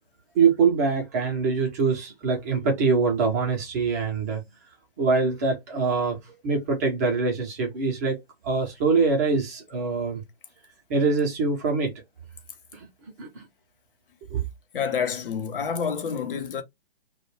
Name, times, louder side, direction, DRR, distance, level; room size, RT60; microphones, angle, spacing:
voice 1, 0.3-4.4 5.0-10.2 10.9-11.9 12.7-12.9 13.2-13.5 14.3-14.4, right 4 dB, 15° right, 0.4 m, -24 dB
voice 2, 14.7-16.6, left 6 dB, 60° left, 0.7 m, -28 dB
2.2 x 2.1 x 3.1 m
hypercardioid pair, 135°, 30 cm